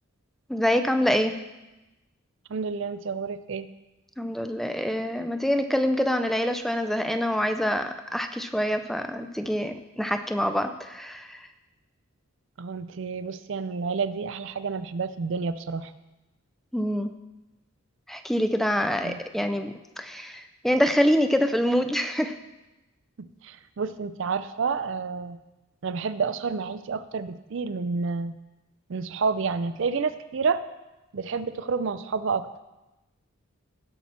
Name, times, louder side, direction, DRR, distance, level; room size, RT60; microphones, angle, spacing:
voice 1, 0.5-1.3 4.2-11.5 16.7-17.1 18.1-22.3, equal, ahead, 7 dB, 0.4 m, -25 dB
voice 2, 2.5-3.7 12.6-15.9 19.0-19.2 23.4-25.4 25.8-28.3 28.9-30.6 31.1-32.5, right 5 dB, 60° right, 13 dB, 0.4 m, -29 dB
16.5 x 5.9 x 4.2 m, 1.0 s
head